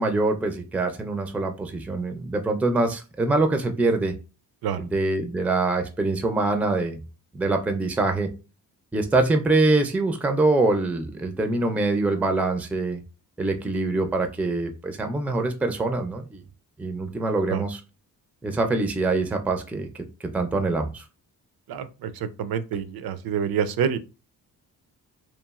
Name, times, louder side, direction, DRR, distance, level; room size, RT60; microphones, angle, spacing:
voice 1, 0.0-4.1 4.8-7.0 7.3-8.3 8.9-13.0 13.4-16.4 16.8-17.8 18.4-19.9 20.2-21.0, right 2 dB, 5° right, 6 dB, 0.4 m, -24 dB
voice 2, 21.7-24.0, right 8 dB, 70° right, 11 dB, 0.5 m, -27 dB
3.0 x 2.3 x 2.3 m, 0.31 s
cardioid pair, 75°, 39 cm